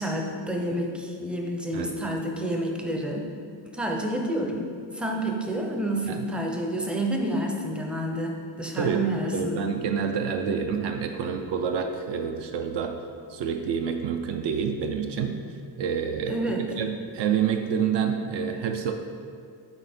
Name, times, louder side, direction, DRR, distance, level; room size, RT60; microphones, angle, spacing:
voice 1, 0.0-3.3 3.7-9.6 16.3-16.7, right 1 dB, ahead, 1 dB, 0.5 m, -29 dB
voice 2, 9.3-13.0 13.3-15.4 15.8-18.9, right 7 dB, 70° right, 5 dB, 0.6 m, -28 dB
7.9 x 4.9 x 4.2 m, 2.2 s
cardioid pair, 170°, 44 cm